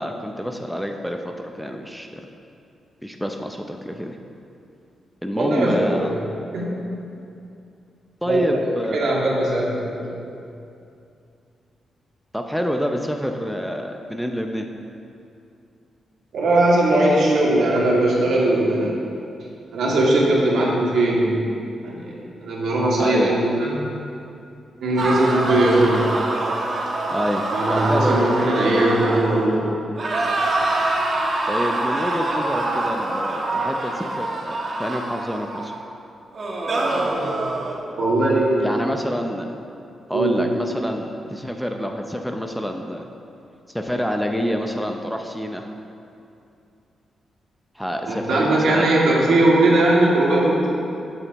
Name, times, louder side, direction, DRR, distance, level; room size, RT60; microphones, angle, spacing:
voice 1, 0.0-2.2 3.0-4.2 5.2-6.1 8.2-9.1 12.3-14.7 23.0-23.3 27.1-28.2 31.5-35.7 38.6-39.5 40.1-43.0 43.7-45.7 47.8-49.1, equal, ahead, 3 dB, 0.6 m, -27 dB
voice 2, 5.4-6.0 6.5-6.8 8.3-8.5 8.9-10.1 16.3-19.0 19.7-21.4 21.8-23.8 24.8-26.0 27.5-29.7 38.0-38.7 40.1-40.4 48.1-50.7, right 1 dB, 80° right, -5 dB, 2.3 m, -19 dB
sound 1, 25.0-29.6 30.0-35.8 36.3-37.8, right 2 dB, 45° right, 1.3 m, -25 dB
14.0 x 7.8 x 3.0 m, 2.6 s
cardioid pair, 105°, 0 cm